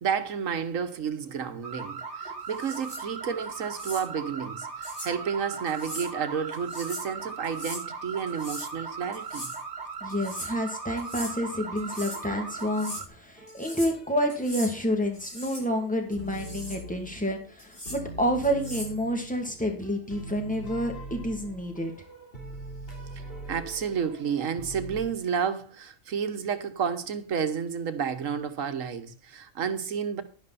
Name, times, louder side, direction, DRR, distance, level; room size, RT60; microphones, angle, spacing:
voice 1, 0.0-9.5 23.5-30.2, right 7 dB, 85° right, 1.5 m, -31 dB
sound 1, 1.6-13.1, right 5 dB, 60° right, 1.7 m, -38 dB
sound 2, 2.5-3.0 3.7-4.0 4.8-5.1 5.7-6.1 6.5-7.1 7.4-7.8 8.3-8.7 9.1-9.6 10.1-10.5 11.0-11.3 11.8-12.3 12.6-13.0 13.5-14.0 14.3-14.7 15.1-15.6 16.1-16.8 17.6-18.0 18.4-19.0, equal, 80° left, 7.2 m, -40 dB
voice 2, 10.0-21.9, equal, 5° left, 2.4 m, -29 dB
sound 3, 11.7-12.9 13.4-15.3 15.6-17.6 17.9-25.1, right 1 dB, 45° left, 3.6 m, -43 dB
11.5 x 11.0 x 4.2 m
omnidirectional pair, 1.3 m